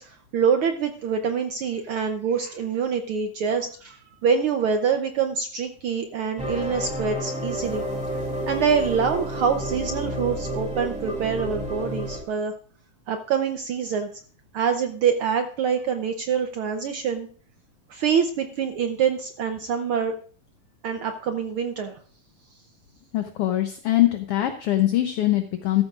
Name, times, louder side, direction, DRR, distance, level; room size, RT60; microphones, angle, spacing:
voice 1, 0.0-7.8 8.1-12.5 13.1-14.1 14.5-17.3 17.9-20.1 20.8-22.0, right 6 dB, 80° right, 6 dB, 1.2 m, -25 dB
sound 1, 6.4-12.2, right 1 dB, 5° right, 2.2 m, -30 dB
voice 2, 23.1-25.8, left 14 dB, 70° left, 7 dB, 1.4 m, -22 dB
14.0 x 13.0 x 2.4 m, 0.43 s
omnidirectional pair, 3.4 m